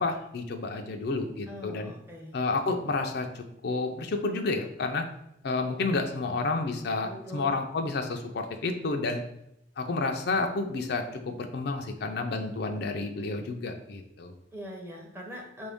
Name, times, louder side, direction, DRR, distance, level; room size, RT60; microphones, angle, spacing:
voice 1, 0.0-1.9 2.3-5.1 5.4-9.2 9.8-14.3, left 3 dB, 55° left, 5 dB, 0.4 m, -30 dB
voice 2, 1.5-2.3 7.0-7.5 14.5-15.7, equal, 15° right, 0 dB, 0.7 m, -42 dB
5.2 x 2.6 x 3.4 m, 0.78 s
head